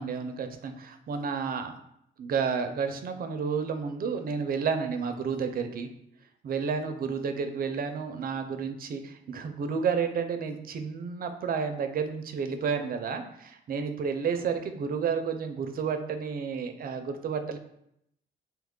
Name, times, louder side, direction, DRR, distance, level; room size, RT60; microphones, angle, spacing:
voice 1, 0.0-1.7 2.2-5.9 6.4-17.6, right 6 dB, 50° right, 7 dB, 0.4 m, -31 dB
2.8 x 2.3 x 3.6 m, 0.75 s
cardioid pair, 90°, 20 cm